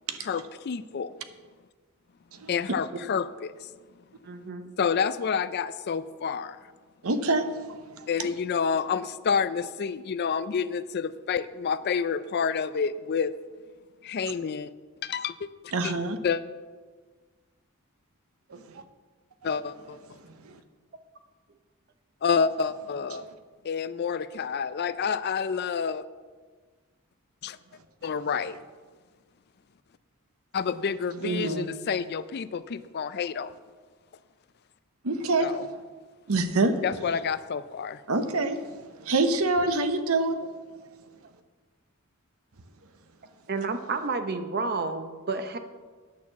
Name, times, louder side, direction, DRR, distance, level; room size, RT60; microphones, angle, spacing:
voice 1, 0.2-1.1 2.5-3.5 4.8-6.6 8.1-13.4 14.0-14.7 15.0-15.5 15.8-15.9 16.2-16.4 19.4-20.0 22.2-23.2 23.6-26.0 27.4-27.6 28.0-28.6 30.5-33.5 35.4-35.6 36.8-38.0, left 6 dB, 45° left, 14 dB, 0.4 m, -28 dB
voice 2, 4.2-4.7 18.5-18.6 43.5-45.6, right 4 dB, 45° right, 8 dB, 0.8 m, -31 dB
voice 3, 7.0-8.3 15.7-16.2 18.5-18.8 20.2-20.6 23.1-23.2 31.2-31.7 35.0-35.8 36.3-36.7 38.1-40.4, right 2 dB, 75° right, 9 dB, 0.8 m, -27 dB
9.4 x 6.4 x 7.2 m, 1.4 s
head